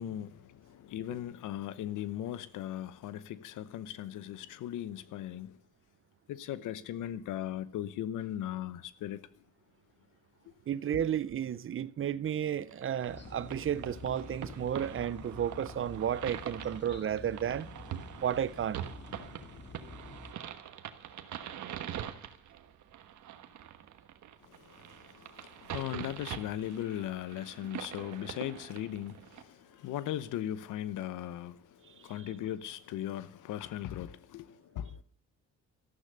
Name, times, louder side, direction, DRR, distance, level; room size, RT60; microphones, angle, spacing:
voice 1, 0.0-5.6 6.3-9.3 10.9-11.1 24.4-35.0, left 12 dB, 85° left, 0.9 m, -38 dB
voice 2, 10.7-17.7 18.2-18.8, right 9 dB, 45° right, 0.6 m, -32 dB
sound 1, 12.7-29.4, right 10 dB, 70° right, 1.3 m, -44 dB
sound 2, 13.1-20.3, left 3 dB, 35° left, 2.0 m, -48 dB
14.0 x 12.0 x 6.7 m
cardioid pair, 90°, 30 cm